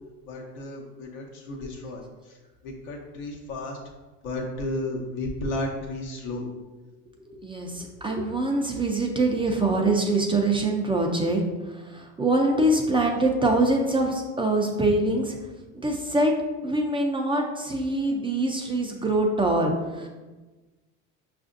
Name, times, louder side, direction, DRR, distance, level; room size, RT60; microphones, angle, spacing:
voice 1, 0.3-2.4 2.6-3.8 4.2-6.5, left 1 dB, 90° left, -1 dB, 0.9 m, -33 dB
voice 2, 7.3-15.4 15.7-16.4 16.6-20.1, right 2 dB, 15° right, 1 dB, 0.3 m, -24 dB
5.6 x 2.5 x 2.5 m, 1.2 s
supercardioid pair, 85°, 40 cm